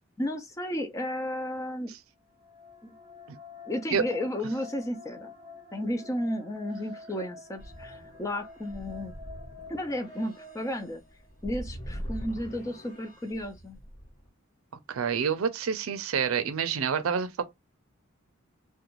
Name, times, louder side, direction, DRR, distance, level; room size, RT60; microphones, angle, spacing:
voice 1, 0.2-1.9 2.8-2.9 3.7-5.3 5.7-9.1 9.7-11.0 11.4-13.8, left 1 dB, 15° left, 0.4 m, -33 dB
sound 1, 2.2-11.4, left 3 dB, 15° right, 0.7 m, -48 dB
sound 2, 7.6-14.3, equal, 45° left, 1.2 m, -43 dB
voice 2, 14.9-17.4, right 6 dB, 80° right, 0.5 m, -28 dB
2.4 x 2.2 x 3.0 m
head